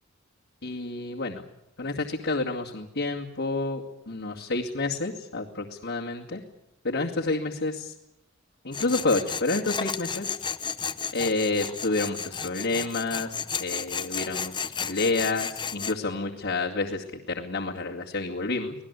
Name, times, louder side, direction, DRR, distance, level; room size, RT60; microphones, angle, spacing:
voice 1, 0.6-1.4 1.8-6.4 6.8-7.9 8.6-10.4 11.1-18.7, left 3 dB, 60° left, -3 dB, 2.4 m, -29 dB
Tools, 8.7-16.0, left 6 dB, 25° left, 0.8 m, -33 dB
25.5 x 19.0 x 8.4 m, 0.84 s
head